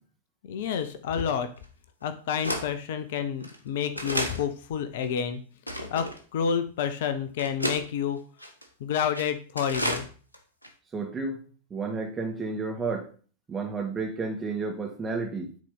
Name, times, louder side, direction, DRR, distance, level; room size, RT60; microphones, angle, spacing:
voice 1, 0.4-1.5 2.0-5.4 5.9-8.2 8.8-10.1, left 8 dB, 55° left, 11 dB, 0.8 m, -29 dB
sound 1, 0.8-0.9 1.6-1.7 2.4-2.7 3.4-3.6 4.0-4.4 5.0-5.1 5.7-6.2 6.9-7.0 7.4-7.8 8.4-8.7 9.1-9.3 9.6-10.1 10.3-10.4 10.6-10.7, equal, 85° left, 1.1 m, -31 dB
voice 2, 10.9-11.4 11.7-13.1 13.5-15.5, right 4 dB, 20° right, 2 dB, 2.1 m, -31 dB
9.2 x 4.2 x 5.5 m, 0.40 s
figure-of-eight pair, 90°, 0 cm